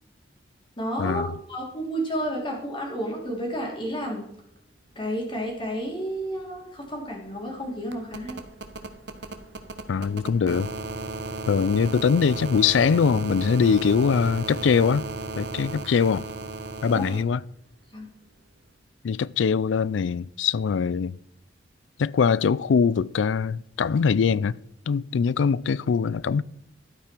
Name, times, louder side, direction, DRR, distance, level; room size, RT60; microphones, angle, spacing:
voice 1, 0.8-4.2 4.9-8.4 16.9-17.1 17.9-18.1, equal, 25° left, 3.2 m, -31 dB
sound 1, 6.0-6.1 6.3-17.2 18.7-18.8, right 3 dB, 65° right, 1.2 m, -35 dB
voice 2, 9.9-10.7 11.5-15.1 15.4-16.2 16.8-17.4 19.0-21.1 22.0-24.6 24.9-26.4, left 6 dB, 85° left, 0.4 m, -22 dB
12.5 x 8.7 x 4.5 m
head